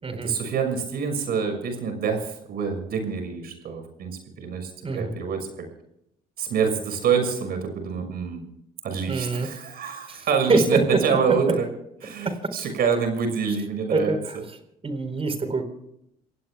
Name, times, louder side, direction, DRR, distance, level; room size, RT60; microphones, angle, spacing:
voice 1, 0.2-5.6 6.4-8.4 8.8-11.7 12.0-14.2, right 6 dB, 65° right, 5 dB, 6.1 m, -26 dB
voice 2, 9.1-9.5 10.1-10.2 10.5-11.0 13.9-14.4 14.8-15.6, right 3 dB, 35° right, 8 dB, 4.3 m, -24 dB
28.0 x 17.0 x 2.4 m, 0.76 s
supercardioid pair, 70°, 17 cm